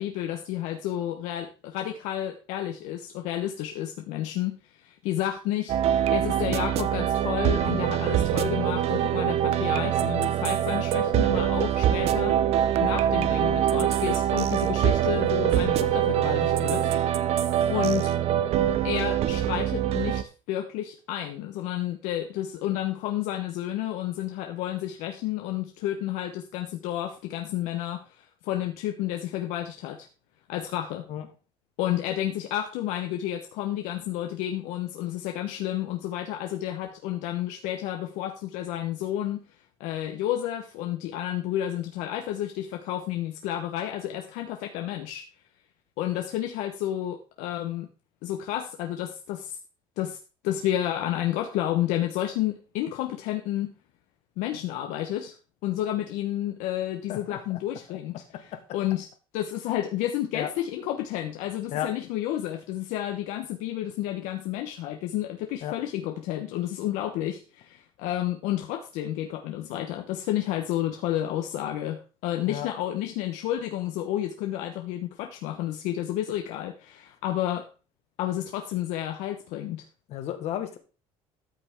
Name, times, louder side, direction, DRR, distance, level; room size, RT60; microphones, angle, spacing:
voice 1, 0.0-12.4 12.8-16.9 17.7-18.1 18.8-20.2 20.5-30.1 30.5-31.1 31.8-39.4 39.8-45.2 46.0-47.9 48.2-49.6 50.0-50.2 50.4-53.7 54.4-55.3 55.6-59.1 59.3-77.7 78.2-79.8, left 12 dB, 80° left, 4 dB, 1.1 m, -31 dB
sound 1, 5.7-20.2, right 10 dB, 55° right, 0.7 m, -24 dB
voice 2, 80.1-80.8, left 11 dB, 60° left, 8 dB, 1.7 m, -32 dB
13.0 x 5.9 x 3.6 m, 0.35 s
cardioid pair, 125°, 12 cm